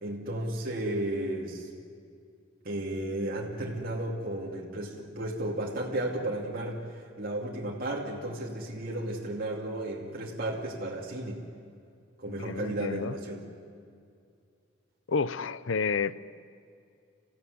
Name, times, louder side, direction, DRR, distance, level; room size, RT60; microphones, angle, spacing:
voice 1, 0.0-1.7 2.6-11.5 12.2-13.5, right 1 dB, 50° right, -3 dB, 2.6 m, -34 dB
voice 2, 12.3-13.1 15.1-16.1, left 5 dB, 75° left, 16 dB, 0.6 m, -30 dB
27.5 x 16.0 x 9.6 m, 2.4 s
head